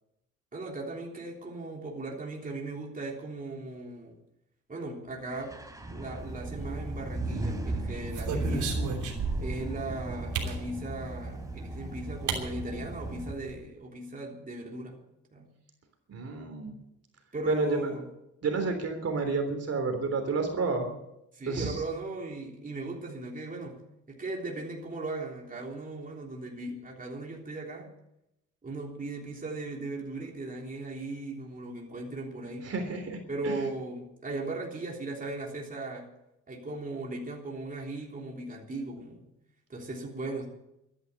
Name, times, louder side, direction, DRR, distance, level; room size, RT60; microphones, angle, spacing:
voice 1, 0.5-4.2 4.7-5.6 5.9-8.7 9.4-15.0 15.3-15.5 17.3-18.0 21.3-23.8 24.1-27.9 28.6-32.7 33.3-36.1 36.5-39.3 39.7-40.5, right 2 dB, 30° right, -1 dB, 3.4 m, -37 dB
sound 1, 5.3-13.3, right 2 dB, 10° right, 3.0 m, -36 dB
sound 2, 6.4-7.1 7.7-9.7 10.3-10.6 11.7-11.8 12.3-12.4 12.8-12.9 13.1-13.5, right 5 dB, 80° right, 3.2 m, -34 dB
voice 2, 16.1-16.8 17.4-17.8 18.4-20.9 21.4-21.8 32.6-33.7, right 4 dB, 55° right, 5 dB, 3.5 m, -30 dB
13.5 x 11.0 x 8.6 m, 0.85 s
cardioid pair, 90°, 30 cm